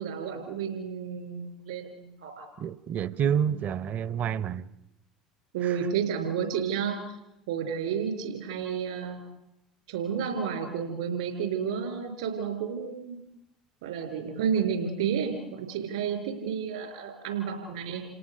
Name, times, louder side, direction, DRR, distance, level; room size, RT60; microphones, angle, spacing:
voice 1, 0.0-2.5 5.5-7.2 7.5-9.2 9.9-13.2 13.8-18.0, right 7 dB, 75° right, 4.7 m, -31 dB
voice 2, 2.6-4.7 5.6-5.8, right 8 dB, 45° right, 1.0 m, -28 dB
28.5 x 18.0 x 6.9 m
figure-of-eight pair, 65°, 4 cm